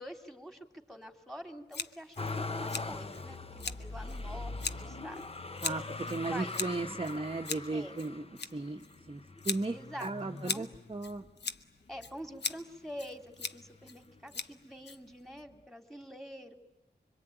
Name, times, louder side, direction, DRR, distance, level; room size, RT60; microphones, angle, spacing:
voice 1, 0.0-5.2 6.1-6.6 7.7-8.0 9.7-10.7 11.9-16.5, equal, ahead, 6 dB, 2.9 m, -46 dB
Scissors, 1.7-15.4, left 5 dB, 70° left, 1.1 m, -41 dB
Motor vehicle (road), 2.2-11.3 11.9-12.7 13.0-14.1 15.1-15.2, left 3 dB, 35° left, 1.0 m, -42 dB
voice 2, 6.1-8.2 8.5-9.8 10.0-11.2, right 3 dB, 30° right, 3 dB, 1.1 m, -36 dB
26.0 x 24.5 x 9.1 m, 0.95 s
wide cardioid pair, 100°, 18 cm